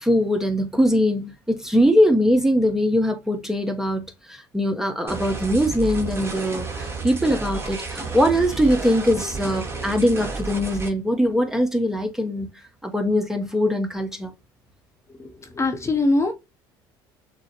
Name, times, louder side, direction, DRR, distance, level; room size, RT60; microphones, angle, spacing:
voice 1, 0.0-12.5 12.8-14.3, equal, 5° right, 0.9 m, -21 dB
sound 1, 5.1-10.9, right 3 dB, 20° right, 1.2 m, -31 dB
voice 2, 15.2-16.3, left 2 dB, 25° left, 0.8 m, -22 dB
6.1 x 2.1 x 2.8 m
supercardioid pair, 80°, 11 cm